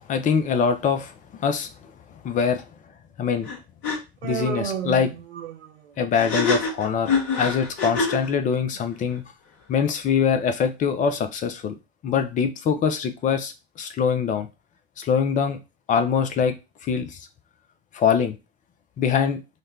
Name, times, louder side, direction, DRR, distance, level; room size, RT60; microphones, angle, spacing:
voice 1, 0.1-1.7 2.2-2.6 3.2-3.5 4.2-5.1 6.0-9.2 9.7-11.7 12.0-13.5 13.8-14.5 15.0-15.6 15.9-16.5 16.8-17.2 17.9-18.3 19.0-19.4, left 6 dB, 25° left, 8 dB, 0.5 m, -23 dB
sound 1, 3.5-3.6 3.8-4.0 6.2-8.3, left 4 dB, 45° left, 1.2 m, -24 dB
Human voice, 4.2-5.9, right 7 dB, 75° right, 0.5 m, -31 dB
3.9 x 2.1 x 3.2 m, 0.27 s
figure-of-eight pair, 75°, 33 cm